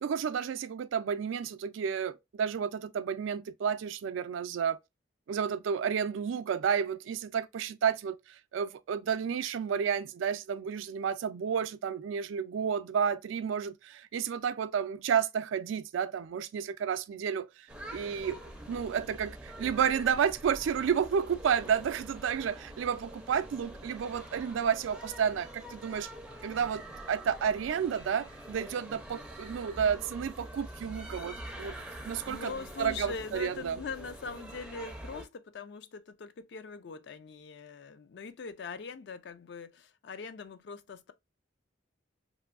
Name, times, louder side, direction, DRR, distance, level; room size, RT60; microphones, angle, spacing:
voice 1, 0.0-4.8 5.3-18.4 18.7-26.1 26.4-26.8 27.1-31.8 32.0-32.5 32.8-33.8, right 7 dB, 80° right, 0.3 m, -31 dB
sound 1, 17.7-35.3, right 1 dB, 5° right, 0.4 m, -45 dB
voice 2, 32.2-41.1, left 4 dB, 60° left, 0.4 m, -42 dB
3.0 x 2.6 x 2.3 m
head